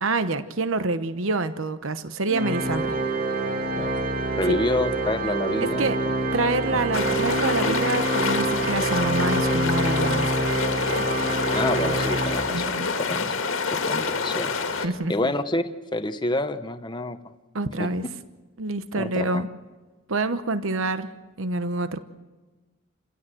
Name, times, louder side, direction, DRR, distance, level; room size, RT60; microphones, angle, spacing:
voice 1, 0.0-3.0 4.5-4.6 5.6-6.0 6.3-10.5 12.5-12.9 14.8-15.3 17.5-18.1 18.6-19.5 20.1-21.1 21.4-22.0, right 3 dB, 70° right, 11 dB, 1.0 m, -27 dB
Organ, 2.3-12.9, right 2 dB, 45° right, 2.4 m, -26 dB
voice 2, 4.4-5.9 6.7-6.8 11.5-12.8 13.1-13.3 13.7-17.2 17.8-17.9 18.9-19.4, left 1 dB, 20° left, 10 dB, 1.0 m, -28 dB
sound 1, 6.9-14.9, left 4 dB, 70° left, 2.0 m, -27 dB
29.5 x 16.0 x 7.8 m, 1.3 s
head